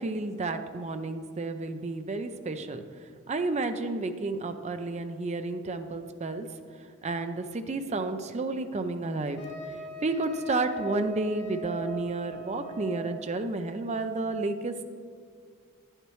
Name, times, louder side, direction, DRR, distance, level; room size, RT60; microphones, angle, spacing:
voice 1, 0.0-2.8 3.3-6.5 7.0-9.4 9.7-14.9, right 2 dB, 30° right, 8 dB, 0.5 m, -31 dB
Wind instrument woodwind instrument, 9.4-13.2, right 2 dB, 55° left, 2.1 m, -40 dB
10.0 x 9.9 x 3.1 m, 2.2 s
head